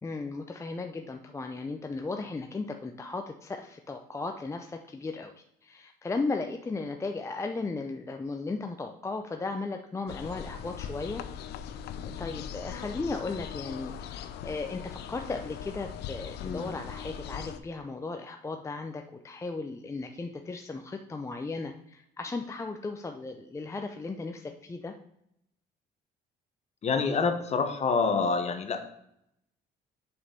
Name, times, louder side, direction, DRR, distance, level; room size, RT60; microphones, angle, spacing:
voice 1, 0.0-5.3 5.6-11.2 12.2-24.9, left 3 dB, 15° left, 5 dB, 0.6 m, -36 dB
sound 1, 10.1-17.6, left 8 dB, 80° left, 0.7 m, -40 dB
voice 2, 16.4-16.7 26.8-28.8, left 4 dB, 40° left, 7 dB, 1.1 m, -27 dB
6.9 x 5.4 x 5.2 m, 0.76 s
cardioid pair, 110°, 17 cm